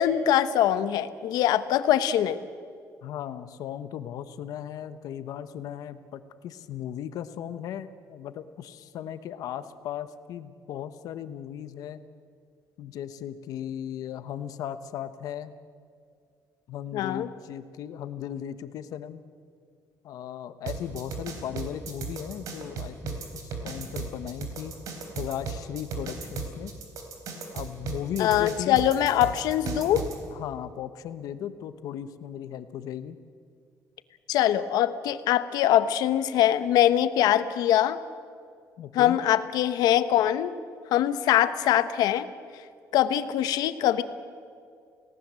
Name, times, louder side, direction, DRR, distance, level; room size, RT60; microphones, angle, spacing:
voice 1, 0.0-2.4 16.9-17.3 28.2-30.1 34.3-38.0 38.9-40.5 40.9-42.3 42.9-44.0, left 11 dB, 85° left, 12 dB, 1.1 m, -23 dB
voice 2, 3.0-12.0 12.8-15.5 16.7-19.2 20.0-24.8 25.2-26.7 27.5-28.8 30.3-33.2 38.8-39.2, left 10 dB, 65° left, 12 dB, 1.2 m, -37 dB
sound 1, 20.7-30.2, right 5 dB, 60° right, 3.9 m, -35 dB
29.5 x 18.0 x 7.7 m, 2.2 s
cardioid pair, 170°, 7 cm